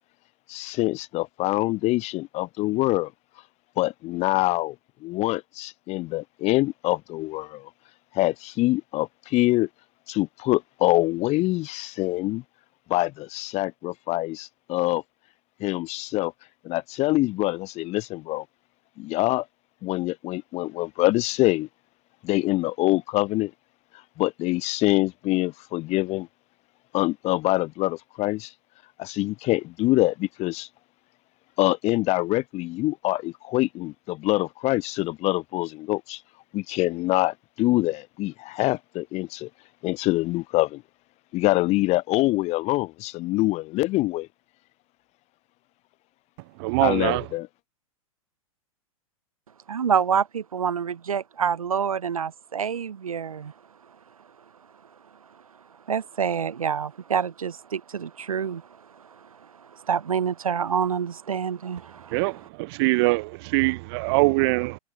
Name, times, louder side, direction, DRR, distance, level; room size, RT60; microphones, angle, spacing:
voice 1, 0.5-3.1 3.8-4.7 5.0-7.7 8.1-9.7 10.1-12.4 12.9-15.0 15.6-16.3 16.6-18.4 19.0-19.4 19.8-21.7 22.2-23.5 24.2-26.3 26.9-28.5 29.0-30.7 31.6-36.2 36.5-39.5 39.8-40.8 41.3-44.3 46.8-47.5, left 19 dB, 35° left, 6.9 m, -25 dB
voice 2, 46.6-47.2 62.1-62.3 62.8-64.8, right 25 dB, 45° right, 1.1 m, -22 dB
voice 3, 49.7-53.5 55.9-58.6 59.9-62.5, right 7 dB, 70° right, 4.9 m, -27 dB
figure-of-eight pair, 100°, 18 cm